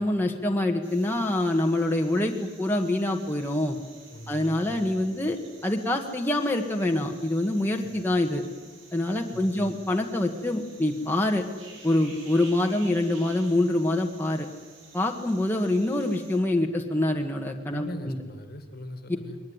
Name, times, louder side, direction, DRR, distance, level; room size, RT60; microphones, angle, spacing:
voice 1, 0.0-3.8 4.3-5.4 5.6-8.4 8.9-11.5 11.8-14.5 14.9-18.2, left 1 dB, 10° left, 1 dB, 1.7 m, -25 dB
sound 1, 0.8-16.4, right 3 dB, 80° right, 5.8 m, -51 dB
voice 2, 4.1-5.0 7.8-7.9 9.3-9.7 17.7-19.4, left 1 dB, 50° left, 8 dB, 2.1 m, -41 dB
22.0 x 19.5 x 9.7 m, 1.3 s
head